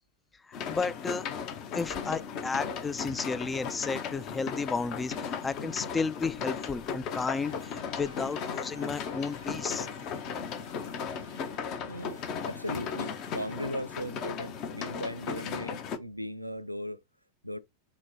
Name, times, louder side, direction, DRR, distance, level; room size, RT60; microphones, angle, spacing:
sound 1, 0.5-16.0, left 6 dB, 40° left, 0.7 m, -36 dB
voice 1, 0.5-1.3 1.7-9.9, left 4 dB, 15° left, 0.3 m, -33 dB
sound 2, 7.1-13.6, left 1 dB, 80° left, 1.2 m, -54 dB
voice 2, 11.8-17.0 17.4-17.6, equal, 90° right, 0.4 m, -38 dB
4.6 x 2.2 x 4.1 m
figure-of-eight pair, 90°, 0 cm